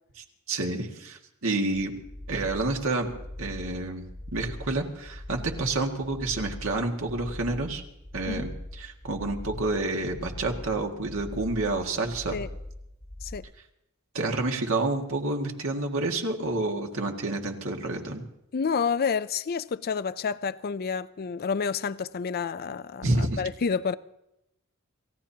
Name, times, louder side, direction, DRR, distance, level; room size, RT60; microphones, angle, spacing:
voice 1, 0.5-1.9 2.3-3.1 3.4-4.1 4.3-7.8 8.1-8.5 8.8-12.4 14.1-18.2 23.0-23.4, right 2 dB, 70° right, 1.9 m, -29 dB
sound 1, 1.7-13.4, left 1 dB, 15° left, 1.1 m, -41 dB
voice 2, 18.5-23.9, left 6 dB, 45° left, 0.5 m, -29 dB
29.0 x 16.0 x 2.8 m
head